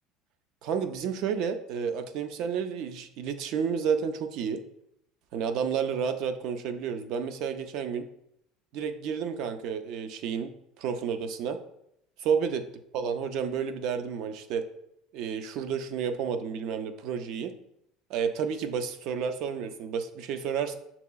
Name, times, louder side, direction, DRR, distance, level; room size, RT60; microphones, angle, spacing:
voice 1, 0.6-4.6 5.3-8.1 8.7-10.5 10.8-11.6 12.2-12.6 12.9-14.7 15.1-17.5 18.1-20.8, right 7 dB, 60° right, 8 dB, 0.4 m, -31 dB
6.5 x 2.9 x 2.3 m, 0.78 s
cardioid pair, 145°, 0 cm